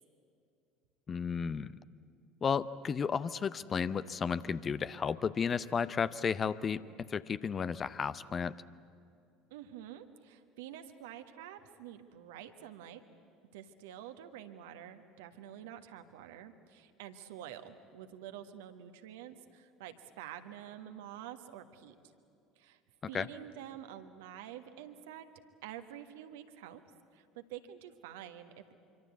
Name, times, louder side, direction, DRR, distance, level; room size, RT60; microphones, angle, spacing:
voice 1, 1.1-1.7 2.4-6.8 7.1-8.5 23.1-23.3, left 6 dB, 30° left, 16 dB, 0.7 m, -33 dB
voice 2, 9.5-13.0 13.5-21.9 22.6-22.8 23.1-25.3 25.6-26.8 27.1-28.7, right 10 dB, 65° right, 8 dB, 1.4 m, -48 dB
25.5 x 24.5 x 8.2 m, 2.5 s
figure-of-eight pair, 65°, 0 cm